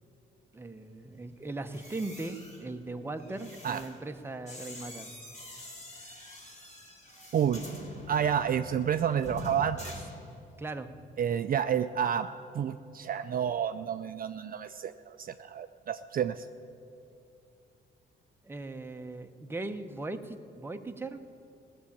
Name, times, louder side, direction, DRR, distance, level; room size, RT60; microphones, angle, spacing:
voice 1, 0.5-5.1 10.6-10.9 18.4-21.2, right 2 dB, 10° right, 6 dB, 0.9 m, -39 dB
sound 1, 1.6-10.7 11.0-11.3, left 1 dB, 35° left, 3.1 m, -46 dB
voice 2, 7.3-7.6 8.1-9.8 11.2-12.3 12.5-16.5, right 8 dB, 45° right, 9 dB, 0.5 m, -29 dB
17.5 x 7.1 x 8.6 m, 2.5 s
cardioid pair, 90°, 20 cm